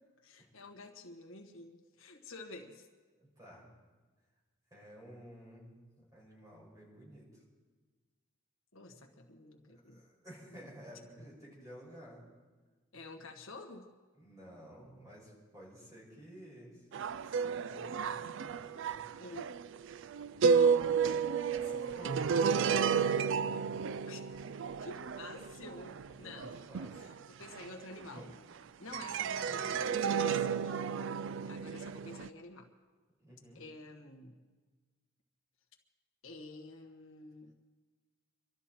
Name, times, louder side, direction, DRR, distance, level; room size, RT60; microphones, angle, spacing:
voice 1, 0.0-2.9 8.7-10.0 10.5-10.7 11.2-11.3 12.9-13.9 19.2-19.5 20.5-21.1 24.1-24.2 24.8-26.6 26.9-28.4 28.8-30.8 31.5-32.7 33.5-34.4 36.2-37.5, left 2 dB, 75° left, 3 dB, 1.6 m, -49 dB
voice 2, 3.2-3.7 4.7-7.3 9.7-12.2 14.1-19.1 21.5-23.8 26.2-27.1 28.2-28.3 33.2-33.6, equal, 15° right, -4 dB, 5.9 m, -53 dB
sound 1, 16.9-28.5 28.9-32.3, right 6 dB, 65° right, 0.4 m, -32 dB
25.0 x 13.0 x 4.5 m, 1.4 s
head